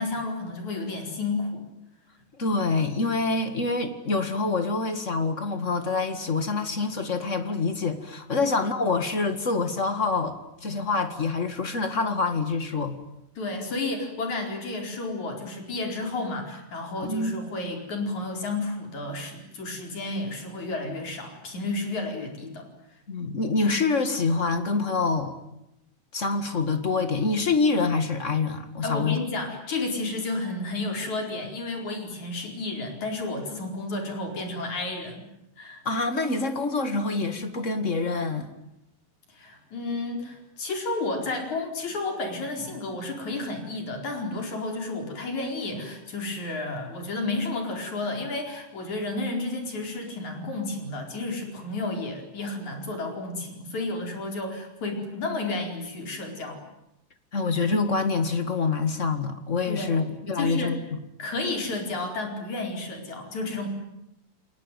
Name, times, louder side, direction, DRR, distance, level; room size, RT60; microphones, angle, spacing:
voice 1, 0.0-1.6 8.4-8.5 13.4-22.7 28.8-35.2 35.6-35.8 39.3-56.6 59.7-60.0 60.4-60.8 61.2-63.7, left 2 dB, 55° left, 3 dB, 5.8 m, -31 dB
voice 2, 2.4-13.0 17.0-17.3 23.1-25.4 26.1-29.2 35.8-38.5 57.3-61.0, left 4 dB, 30° left, 8 dB, 1.6 m, -26 dB
29.5 x 21.5 x 9.2 m, 0.88 s
omnidirectional pair, 4.0 m